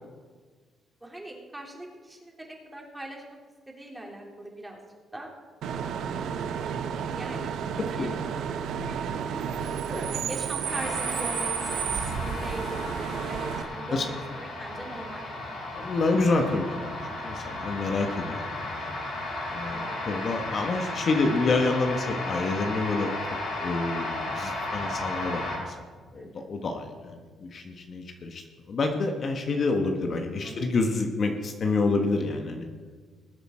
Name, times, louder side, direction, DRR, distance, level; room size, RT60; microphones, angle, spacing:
voice 1, 1.0-3.4 3.7-4.8 5.1-5.3 6.3-7.5 8.0-8.2 9.7-15.2 17.5-17.8 19.7-20.0 26.1-26.4 30.4-30.8, right 1 dB, 10° right, -1 dB, 3.1 m, -41 dB
Bus / Idling / Screech, 5.6-13.6, right 7 dB, 80° right, 0.8 m, -31 dB
sound 1, 10.6-25.6, left 2 dB, 70° left, 4.5 m, -34 dB
voice 2, 15.7-17.0 17.2-18.9 19.5-23.1 23.6-25.8 26.1-32.6, left 3 dB, 50° left, 4 dB, 1.3 m, -28 dB
20.0 x 8.2 x 4.4 m, 1.5 s
cardioid pair, 90°, 0 cm